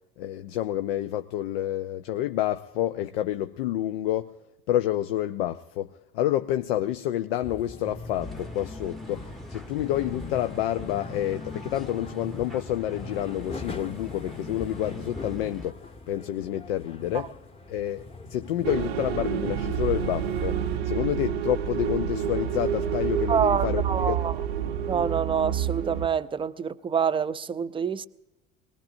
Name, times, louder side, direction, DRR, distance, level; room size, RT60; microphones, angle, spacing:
voice 1, 0.2-4.4 4.7-15.8 16.1-17.4 17.7-18.0 18.3-24.2, left 12 dB, 75° left, 0.6 m, -29 dB
sound 1, 7.4-20.8, left 2 dB, 20° left, 1.1 m, -41 dB
sound 2, 8.2-15.7, left 1 dB, ahead, 0.8 m, -43 dB
sound 3, 18.6-26.1, right 9 dB, 85° right, 0.7 m, -28 dB
voice 2, 23.3-24.3 24.9-28.1, right 7 dB, 15° right, 0.5 m, -26 dB
23.0 x 19.5 x 2.6 m
hypercardioid pair, 75°, 30 cm